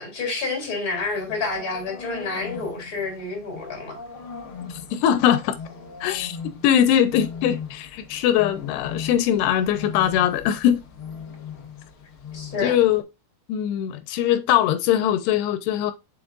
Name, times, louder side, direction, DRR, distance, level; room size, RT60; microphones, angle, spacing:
voice 1, 0.0-4.0 12.3-12.8, left 3 dB, 20° left, 3.8 m, -29 dB
sound 1, 0.9-13.0, left 6 dB, 60° left, 1.3 m, -39 dB
voice 2, 4.7-5.6 6.0-6.4 6.6-10.8 12.6-13.0 13.5-15.9, left 10 dB, 85° left, 2.9 m, -21 dB
7.4 x 6.5 x 2.4 m
omnidirectional pair, 4.7 m